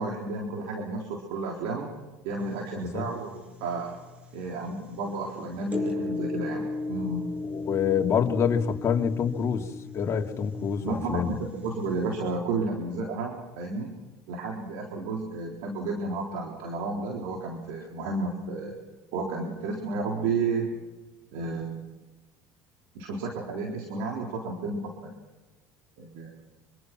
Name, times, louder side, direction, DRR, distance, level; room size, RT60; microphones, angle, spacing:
voice 1, 0.0-1.9 2.2-3.9 4.3-7.3 10.8-13.9 14.3-18.7 19.1-20.8 21.3-21.9 22.9-25.2 26.0-26.3, right 3 dB, 80° right, 0 dB, 4.0 m, -32 dB
sound 1, 2.4-12.4, left 3 dB, 20° right, 6.5 m, -37 dB
voice 2, 7.5-9.7 9.9-11.3, left 7 dB, 45° left, 2 dB, 2.7 m, -26 dB
26.5 x 25.0 x 6.1 m, 1.1 s
supercardioid pair, 90°, 7 cm